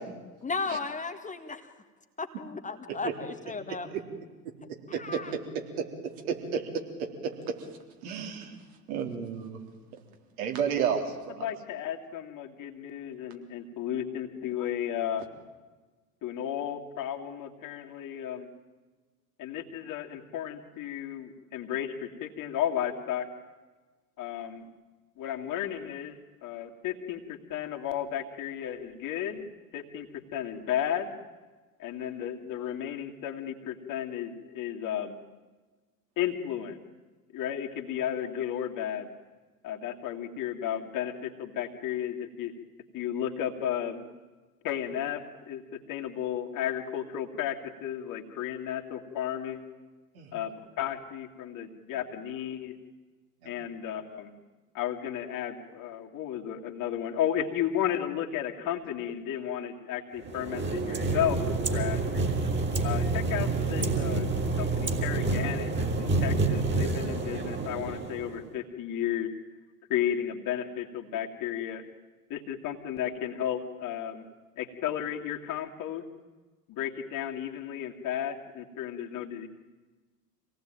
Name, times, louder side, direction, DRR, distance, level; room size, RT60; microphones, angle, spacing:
voice 1, 0.4-1.6 2.2-3.9 4.9-5.3, left 4 dB, 15° left, 6 dB, 1.8 m, -35 dB
voice 2, 4.9-5.4 6.0-6.6 8.0-8.6 8.9-9.6 10.4-11.5 50.1-50.3 53.4-53.5, right 7 dB, 60° right, 3 dB, 4.0 m, -31 dB
voice 3, 11.4-15.2 16.2-18.5 19.4-23.3 24.2-24.7 25.2-26.2 26.4-29.4 29.7-31.1 31.8-35.2 36.2-36.8 37.3-39.1 39.6-42.6 42.9-44.1 44.6-45.2 45.5-49.6 50.3-52.7 53.4-54.3 54.7-62.0 62.8-69.3 69.9-71.8 72.3-74.2 74.6-76.0 76.7-79.5, left 10 dB, 40° left, 3 dB, 2.7 m, -33 dB
sound 1, 60.2-68.5, right 3 dB, 20° right, 3.4 m, -28 dB
26.5 x 18.0 x 9.1 m, 1.3 s
figure-of-eight pair, 80°, 48 cm